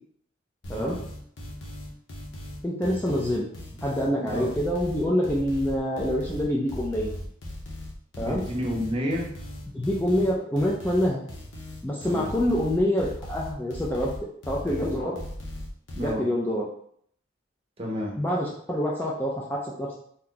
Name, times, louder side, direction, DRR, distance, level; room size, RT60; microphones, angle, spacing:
sound 1, 0.6-16.1, left 1 dB, 65° left, 0.8 m, -38 dB
voice 1, 2.6-3.5 3.8-7.1 8.2-8.4 9.7-11.2 11.8-14.1 14.5-15.2 16.0-16.7 18.2-20.0, equal, 10° left, -4 dB, 0.4 m, -26 dB
voice 2, 8.2-9.3 12.0-12.3 15.9-16.2 17.8-18.1, equal, 30° right, -1 dB, 0.7 m, -30 dB
2.7 x 2.3 x 3.8 m, 0.65 s
head